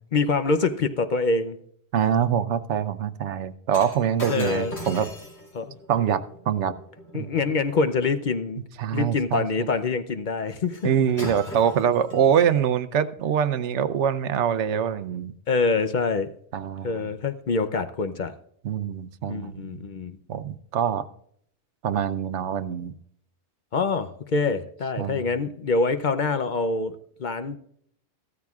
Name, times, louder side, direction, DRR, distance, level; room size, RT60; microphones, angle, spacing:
voice 1, 0.1-1.6 4.3-4.7 5.5-5.8 7.1-8.6 8.9-10.9 11.2-11.3 15.5-16.3 16.8-18.3 19.3-20.2 23.7-27.6, left 4 dB, 50° left, 10 dB, 0.7 m, -25 dB
voice 2, 1.9-5.1 5.9-6.7 7.1-7.3 8.8-9.5 10.8-15.3 16.5-17.0 18.6-19.8 20.3-21.0 21.8-22.9 25.0-25.3, right 8 dB, 90° right, 13 dB, 1.0 m, -24 dB
Shatter, 3.7-8.1 10.7-10.9 11.2-12.7 13.4-13.6, equal, 70° left, 3.3 m, -39 dB
15.0 x 13.0 x 2.4 m, 0.68 s
omnidirectional pair, 1.2 m